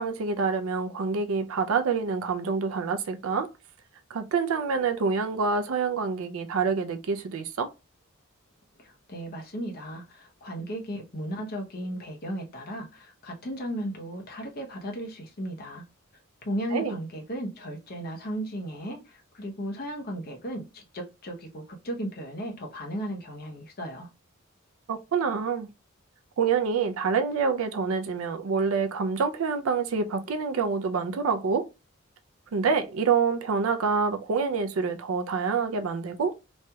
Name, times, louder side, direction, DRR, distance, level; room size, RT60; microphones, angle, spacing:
voice 1, 0.0-3.5 4.1-7.7 16.7-17.0 24.9-25.7 26.4-31.7 32.5-36.4, right 5 dB, 70° right, 0.4 m, -27 dB
voice 2, 8.8-15.8 16.4-24.1, equal, 45° left, 0.8 m, -35 dB
3.1 x 2.8 x 2.2 m
head